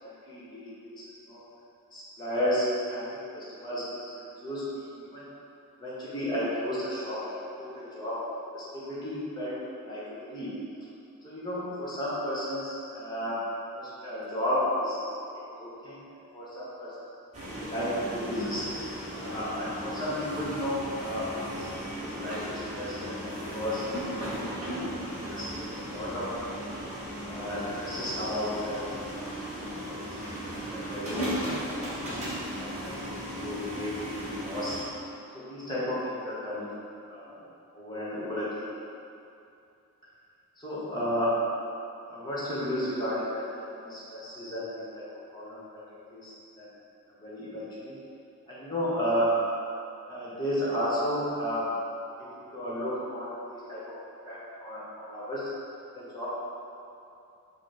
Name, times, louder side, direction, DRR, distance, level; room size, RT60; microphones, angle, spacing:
voice 1, 0.0-1.4 1.9-3.9 4.2-4.8 5.1-5.3 5.8-8.3 8.5-10.5 11.2-13.4 13.7-15.0 15.6-16.1 16.3-17.1 17.5-18.7 19.2-23.9 24.8-26.6 27.2-29.0 29.7-30.0 30.5-31.9 32.6-34.8 35.3-36.7 37.1-37.3 37.7-38.6 40.6-41.4 42.1-45.1 45.3-45.8 46.1-46.7 47.1-48.0 48.5-49.4 50.1-51.7 52.2-54.0 54.3-55.5 55.9-56.3, equal, 20° left, -9 dB, 1.1 m, -33 dB
sound 1, 17.3-34.8, equal, 30° right, 1.0 m, -36 dB
5.7 x 2.2 x 4.3 m, 2.7 s
head